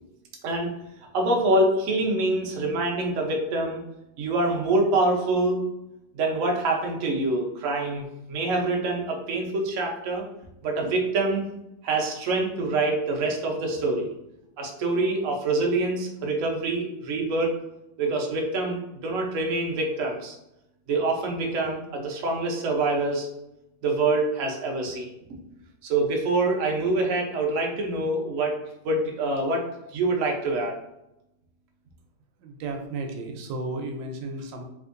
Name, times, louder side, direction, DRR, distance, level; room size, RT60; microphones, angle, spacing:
voice 1, 1.1-3.8 4.2-5.6 6.2-10.2 10.6-11.5 11.8-14.1 14.6-17.6 18.0-20.4 20.9-23.3 23.8-25.1 25.8-28.6 28.8-30.7, right 2 dB, 60° right, 0 dB, 0.9 m, -25 dB
voice 2, 32.4-34.6, right 2 dB, 85° right, 4 dB, 1.3 m, -33 dB
3.4 x 3.0 x 2.5 m, 0.87 s
omnidirectional pair, 2.0 m